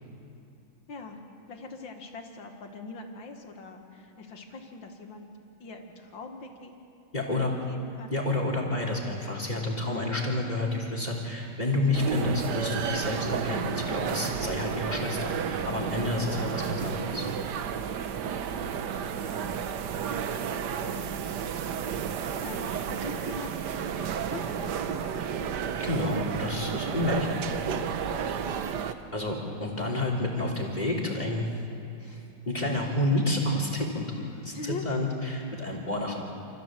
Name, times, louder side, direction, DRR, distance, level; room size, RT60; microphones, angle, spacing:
voice 1, 0.9-1.2 1.5-5.2 5.6-6.7 7.3-8.1 9.8-10.1 20.8-21.2 22.4-23.5 23.9-25.1 28.5-28.8 34.5-34.8, left 3 dB, 90° left, 4 dB, 2.6 m, -42 dB
voice 2, 7.1-7.5 8.1-17.3 25.8-27.4 29.1-31.5 32.0-36.2, left 2 dB, 20° left, 0 dB, 3.4 m, -29 dB
sound 1, 11.9-28.9, right 7 dB, 65° right, 1.4 m, -32 dB
28.5 x 14.5 x 7.6 m, 2.8 s
omnidirectional pair, 2.0 m